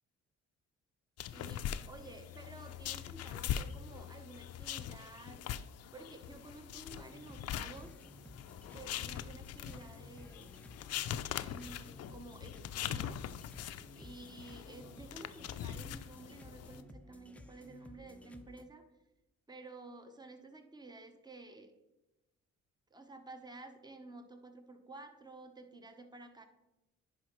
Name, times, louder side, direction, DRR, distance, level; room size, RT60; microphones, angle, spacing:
sound 1, 1.2-16.8, left 10 dB, 55° left, 0.4 m, -42 dB
voice 1, 1.3-5.4 5.9-7.9 8.7-10.5 11.5-13.2 14.0-18.8 19.5-21.7 22.9-26.5, right 2 dB, 15° right, 7 dB, 0.9 m, -52 dB
sound 2, 7.0-18.6, equal, 5° left, 0.5 m, -55 dB
10.5 x 4.9 x 3.1 m, 0.98 s
cardioid pair, 90°, 30 cm